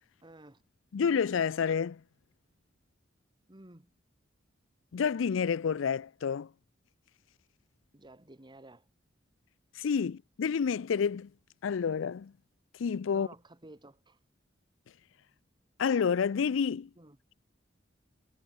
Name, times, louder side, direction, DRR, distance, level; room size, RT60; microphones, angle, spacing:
voice 1, 0.2-0.6 3.5-3.9 7.9-8.9 13.1-14.2 17.0-17.2, right 2 dB, 25° right, 1.7 m, -53 dB
voice 2, 0.9-2.0 4.9-6.5 9.7-11.3 11.6-12.3 12.8-13.3 15.8-16.9, left 6 dB, 85° left, 0.4 m, -29 dB
head